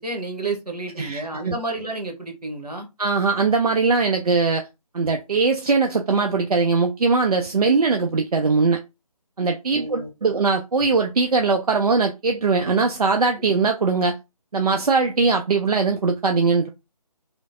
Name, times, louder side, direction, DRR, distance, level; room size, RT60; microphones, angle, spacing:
voice 1, 0.0-2.9 9.7-10.1 13.4-13.5, right 2 dB, 90° right, 1.1 m, -31 dB
voice 2, 1.0-1.5 3.0-4.7 4.9-8.8 9.4-14.2 14.5-16.7, right 4 dB, 70° right, 0.4 m, -21 dB
3.1 x 2.0 x 2.5 m
figure-of-eight pair, 150°, 20 cm